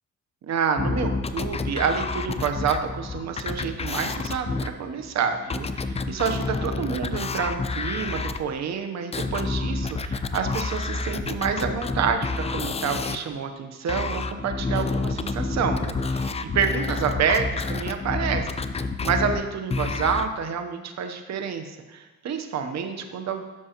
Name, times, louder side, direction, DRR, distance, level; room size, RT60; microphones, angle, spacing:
voice 1, 0.4-18.5 18.8-23.4, right 6 dB, 60° right, 7 dB, 1.0 m, -28 dB
sound 1, 0.8-8.4 9.1-13.2 13.9-20.3, left 3 dB, 20° left, 0.4 m, -29 dB
12.0 x 6.2 x 3.0 m, 1.2 s
cardioid pair, 90°, 30 cm